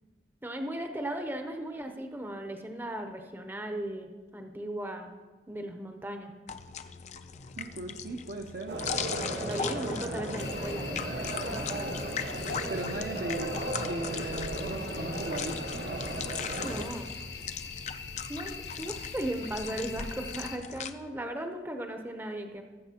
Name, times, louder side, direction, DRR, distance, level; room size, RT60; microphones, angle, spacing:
voice 1, 0.4-5.1 5.5-6.3 9.4-11.8 16.6-17.1 18.3-22.6, right 1 dB, 10° right, 5 dB, 0.7 m, -37 dB
sound 1, 6.5-20.9, left 7 dB, 40° left, 0.4 m, -39 dB
voice 2, 7.6-8.8 12.7-15.8, right 2 dB, 55° right, 2 dB, 0.6 m, -37 dB
sound 2, 8.7-16.8, right 1 dB, 75° right, 1.3 m, -36 dB
sound 3, 10.4-20.6, left 4 dB, 70° left, 0.8 m, -42 dB
19.0 x 7.6 x 2.9 m, 1.3 s
head